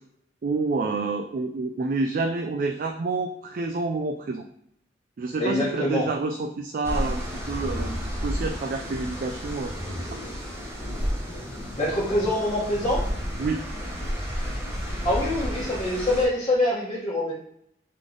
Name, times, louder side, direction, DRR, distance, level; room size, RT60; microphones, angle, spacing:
voice 1, 0.4-4.4 5.2-7.2 7.5-8.0 8.2-9.7 13.4-13.6, right 3 dB, 50° right, 3 dB, 0.3 m, -28 dB
voice 2, 5.4-6.1 11.8-13.0 15.0-17.3, left 1 dB, 25° left, -10 dB, 1.1 m, -24 dB
sound 1, 6.8-16.3, equal, 15° right, 0.9 m, -31 dB
3.7 x 3.2 x 3.8 m, 0.71 s
head